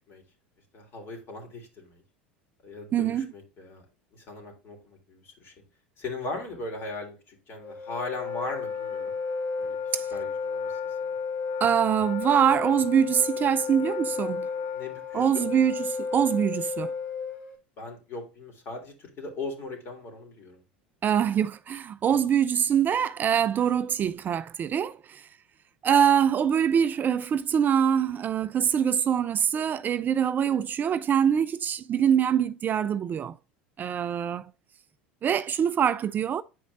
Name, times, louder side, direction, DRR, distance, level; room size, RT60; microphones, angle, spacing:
voice 1, 0.7-2.0 2.6-3.9 4.1-5.5 6.0-9.2 9.6-9.8 10.1-11.1 14.7-15.4 17.8-20.6 22.1-22.2, left 3 dB, 45° left, 3.5 m, -39 dB
voice 2, 2.9-3.3 9.9-10.1 11.6-14.5 15.1-16.9 21.0-25.3 25.8-33.3 33.8-34.5 35.2-36.4, right 8 dB, 35° right, 0.4 m, -24 dB
Wind instrument woodwind instrument, 7.6-17.5, left 5 dB, 70° left, 2.7 m, -32 dB
9.4 x 5.1 x 2.5 m
hypercardioid pair, 85°, 5 cm